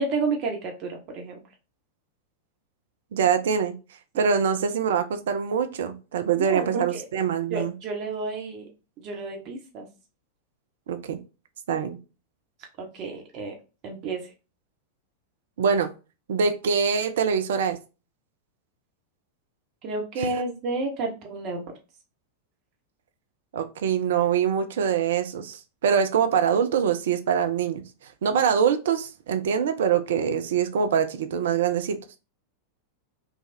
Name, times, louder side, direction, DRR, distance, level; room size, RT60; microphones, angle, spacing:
voice 1, 0.0-1.4 4.1-4.2 6.3-7.0 7.5-8.7 9.0-9.9 12.8-13.5 13.8-14.3 19.8-21.6, right 3 dB, 40° right, 1.0 m, -31 dB
voice 2, 3.1-3.8 4.2-7.7 10.9-11.2 11.7-12.0 15.6-15.9 16.3-17.8 23.5-27.8 28.2-32.0, right 7 dB, 60° right, 0.5 m, -24 dB
3.3 x 2.3 x 4.0 m
figure-of-eight pair, 90°, 0 cm